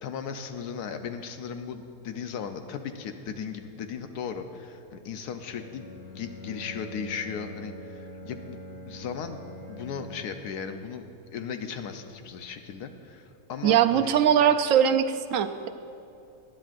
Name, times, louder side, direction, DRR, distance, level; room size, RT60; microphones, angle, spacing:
voice 1, 0.0-5.9 6.1-8.6 8.9-9.4 9.7-11.0 11.3-14.1, left 6 dB, 85° left, 7 dB, 1.3 m, -36 dB
Bowed string instrument, 5.4-10.5, left 1 dB, 45° left, 1.7 m, -44 dB
voice 2, 13.6-15.7, right 9 dB, 70° right, 8 dB, 0.9 m, -21 dB
19.5 x 10.0 x 2.5 m, 2.6 s
omnidirectional pair, 1.6 m